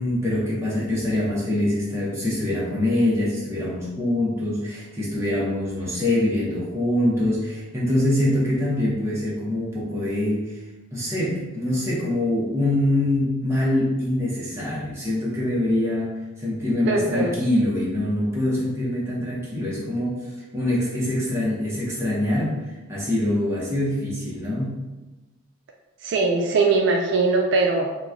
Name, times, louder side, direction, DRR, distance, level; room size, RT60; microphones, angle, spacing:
voice 1, 0.0-10.6 10.9-16.1 16.4-20.2 20.5-22.6 22.9-24.8, left 1 dB, 15° right, -7 dB, 0.9 m, -24 dB
voice 2, 16.8-17.3 26.0-27.9, right 3 dB, 60° right, 1 dB, 0.3 m, -21 dB
2.9 x 2.2 x 3.6 m, 1.1 s
head